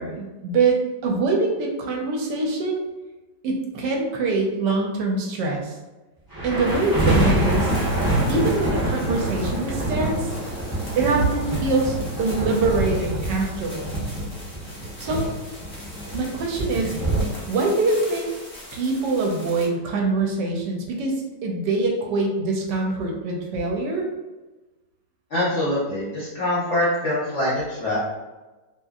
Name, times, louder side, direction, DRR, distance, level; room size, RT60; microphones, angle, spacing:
voice 1, 0.0-2.8 3.4-5.7 6.4-7.7 8.3-10.3 11.0-13.9 15.0-15.3 16.1-17.0 17.5-18.3 18.7-21.1 21.4-24.0, right 3 dB, 75° right, 0 dB, 1.2 m, -24 dB
sound 1, 6.3-17.2, right 1 dB, 25° right, 0.5 m, -25 dB
sound 2, 6.5-19.7, left 1 dB, 30° left, 0.7 m, -42 dB
voice 2, 25.3-28.0, left 1 dB, 60° left, -8 dB, 0.8 m, -24 dB
2.8 x 2.6 x 2.4 m, 1.2 s
omnidirectional pair, 1.9 m